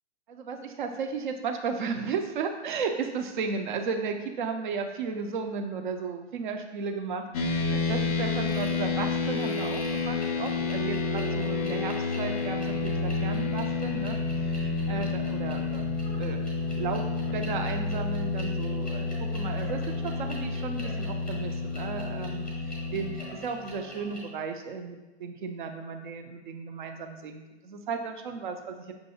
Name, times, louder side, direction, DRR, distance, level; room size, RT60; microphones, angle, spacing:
voice 1, 0.3-15.9 16.2-16.4 16.7-17.1 17.3-28.9, right 5 dB, 45° right, 5 dB, 0.5 m, -34 dB
sound 1, 7.3-23.2, left 4 dB, 35° left, 0.5 m, -30 dB
sound 2, 8.5-8.8 9.3-24.2, right 1 dB, 5° left, 0.8 m, -44 dB
5.5 x 2.5 x 2.8 m, 1.1 s
figure-of-eight pair, 120°, 35 cm